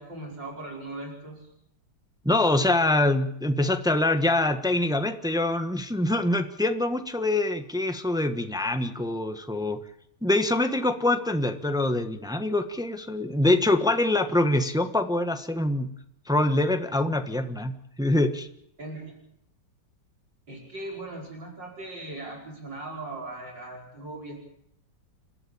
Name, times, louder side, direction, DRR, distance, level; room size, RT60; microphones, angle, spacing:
voice 1, 0.0-1.5 17.0-17.2 18.8-19.1 20.5-24.4, right 2 dB, 55° right, -1 dB, 5.8 m, -39 dB
voice 2, 2.2-9.8 10.2-15.9 16.3-17.7 18.0-18.5, left 2 dB, 5° right, 7 dB, 0.9 m, -24 dB
30.0 x 13.0 x 8.7 m, 0.74 s
omnidirectional pair, 2.4 m